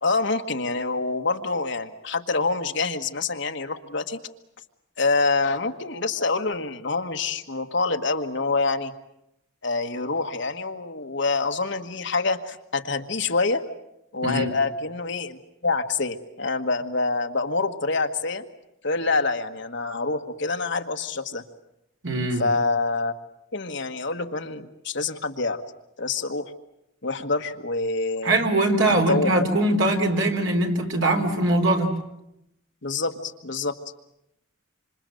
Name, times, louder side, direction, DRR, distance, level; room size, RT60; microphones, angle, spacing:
voice 1, 0.0-4.2 5.0-8.9 9.6-13.6 14.1-18.4 18.8-21.4 22.4-23.1 23.5-25.6 26.0-26.5 27.0-28.4 28.8-29.3 32.8-33.7, left 3 dB, 55° left, 6 dB, 1.6 m, -26 dB
voice 2, 14.2-14.5 22.0-22.5 28.2-32.0, right 2 dB, 65° right, 3 dB, 3.7 m, -22 dB
27.0 x 26.5 x 7.8 m, 0.83 s
head